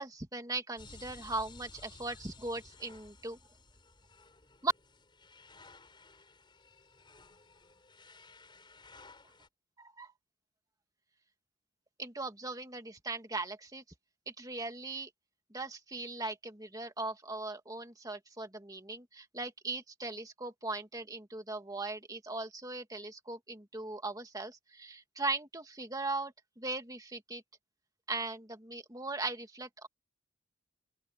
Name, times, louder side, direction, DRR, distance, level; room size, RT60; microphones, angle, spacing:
voice 1, 0.0-3.4 4.6-4.7 9.8-10.1 12.0-13.8 14.3-15.1 15.5-27.4 28.1-29.9, right 3 dB, 20° right, 2.4 m, -39 dB
sound 1, 0.8-9.5, left 3 dB, 25° left, 5.4 m, -56 dB
open air
head